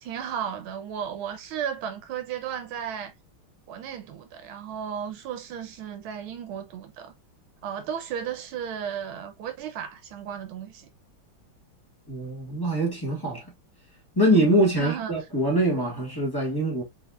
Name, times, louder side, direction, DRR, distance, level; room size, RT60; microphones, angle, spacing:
voice 1, 0.0-3.1 3.7-7.1 7.6-10.9 14.8-15.3, right 8 dB, 80° right, 1.5 m, -34 dB
voice 2, 12.1-13.5 14.2-16.8, right 1 dB, 10° left, 1.8 m, -23 dB
4.1 x 4.1 x 2.3 m
omnidirectional pair, 2.3 m